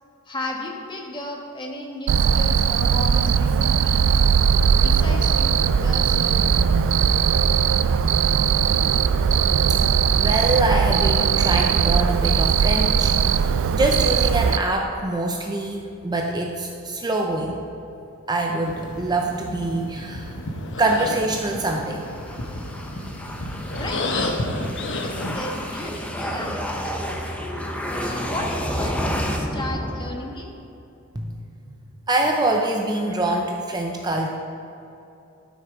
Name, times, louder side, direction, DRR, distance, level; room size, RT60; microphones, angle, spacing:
voice 1, 0.3-4.1 4.8-6.6 23.7-24.5 24.9-27.0 27.9-30.5, left 1 dB, 20° left, 0 dB, 1.3 m, -34 dB
Cricket, 2.1-14.6, right 7 dB, 60° right, 0.3 m, -19 dB
voice 2, 10.2-17.6 18.3-20.4 20.8-22.0 31.2-31.3 32.1-34.3, right 2 dB, 20° right, 2 dB, 0.6 m, -24 dB
sound 1, 18.6-25.4, left 2 dB, 60° left, 1.0 m, -31 dB
sound 2, 21.3-30.7, equal, 5° left, 0.9 m, -30 dB
12.0 x 6.3 x 4.6 m, 2.8 s
head